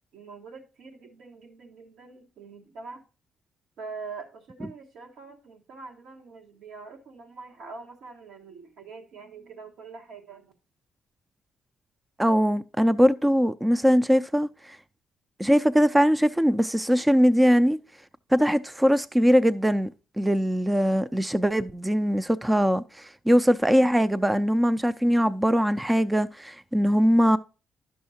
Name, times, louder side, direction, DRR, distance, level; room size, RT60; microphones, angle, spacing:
voice 1, 0.1-3.0 3.8-10.5, right 4 dB, 80° right, 1.4 m, -44 dB
voice 2, 12.2-14.8 15.4-17.8 18.3-19.9 20.2-27.4, equal, 10° right, 0.3 m, -21 dB
11.0 x 6.3 x 2.8 m
cardioid pair, 90°, 0 cm